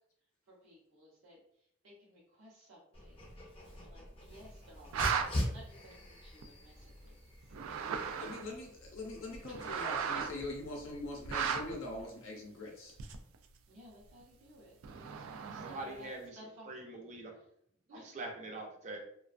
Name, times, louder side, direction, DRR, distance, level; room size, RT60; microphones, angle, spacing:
voice 1, 0.5-1.4 1.8-5.1 5.3-7.1 7.4-8.5 9.5-10.1 13.7-15.2 15.5-16.7 17.9-18.2, equal, 75° right, -7 dB, 0.7 m, -57 dB
Dog, 2.9-12.0, left 1 dB, 30° left, 0.6 m, -44 dB
sound 1, 4.7-5.3 6.4-6.5 7.4-8.5 9.3-10.4 11.3-11.7 13.0-13.4 14.8-16.0, right 7 dB, 90° right, 0.3 m, -35 dB
voice 2, 8.2-12.9, left 2 dB, 70° left, 0 dB, 0.5 m, -42 dB
voice 3, 15.5-16.4 16.7-17.3 17.9-19.0, right 2 dB, 35° right, 1 dB, 0.5 m, -44 dB
2.4 x 2.2 x 2.4 m, 0.71 s
head